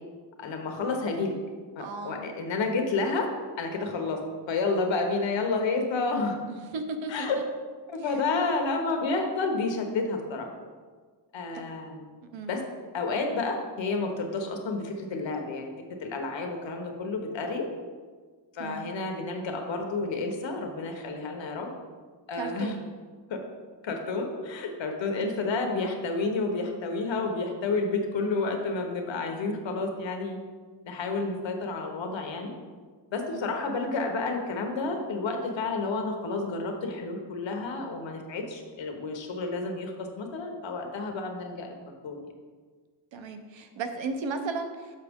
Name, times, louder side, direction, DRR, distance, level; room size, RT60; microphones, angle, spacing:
voice 1, 0.4-1.4 1.7-3.3 3.6-4.2 4.5-6.4 7.1-7.4 7.9-10.5 11.3-12.1 12.5-12.6 12.9-15.7 16.0-17.6 18.5-21.7 22.3-22.8 23.8-30.4 30.8-32.5 33.1-41.7 42.0-42.2, left 3 dB, 80° left, 3 dB, 1.1 m, -30 dB
voice 2, 1.8-2.3 6.5-7.3 11.5-11.6 12.3-12.6 18.6-18.9 22.4-22.8 33.3-33.4 43.1-45.0, right 3 dB, 85° right, 7 dB, 0.8 m, -35 dB
6.6 x 6.0 x 3.6 m, 1.5 s
wide cardioid pair, 125°, 44 cm